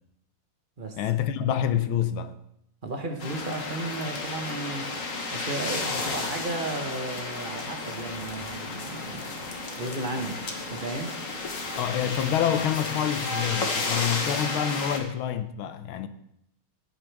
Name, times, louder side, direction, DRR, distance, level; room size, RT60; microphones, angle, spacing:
voice 1, 1.0-2.3 11.8-16.1, left 9 dB, 80° left, 1.6 m, -27 dB
voice 2, 2.8-4.9 5.3-9.3 9.8-10.4 10.7-11.1, right 2 dB, 30° right, 1.1 m, -34 dB
sound 1, 3.2-15.0, left 3 dB, 40° left, 1.6 m, -32 dB
16.5 x 8.9 x 3.5 m
omnidirectional pair, 2.3 m